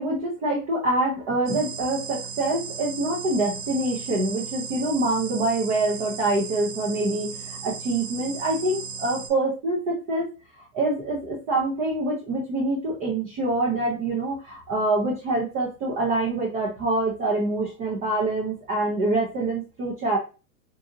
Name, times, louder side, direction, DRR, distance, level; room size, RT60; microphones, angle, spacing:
voice 1, 0.0-10.3 10.7-20.2, right 2 dB, 20° right, -3 dB, 0.3 m, -25 dB
sound 1, 1.5-9.3, right 6 dB, 65° right, 0.7 m, -36 dB
2.7 x 2.6 x 2.3 m, 0.31 s
hypercardioid pair, 115°, 46 cm